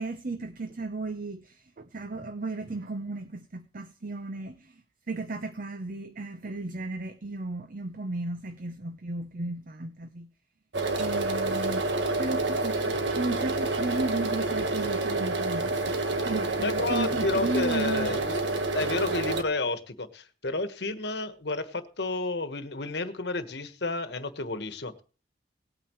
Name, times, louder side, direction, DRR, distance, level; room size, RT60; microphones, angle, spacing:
voice 1, 0.0-10.3 11.0-16.0 16.2-18.2, right 2 dB, 50° right, 0.7 m, -34 dB
sound 1, 10.7-19.4, right 2 dB, 80° right, 1.5 m, -28 dB
voice 2, 16.6-18.4 18.7-25.0, left 3 dB, 65° left, 1.3 m, -31 dB
18.5 x 9.0 x 3.1 m
head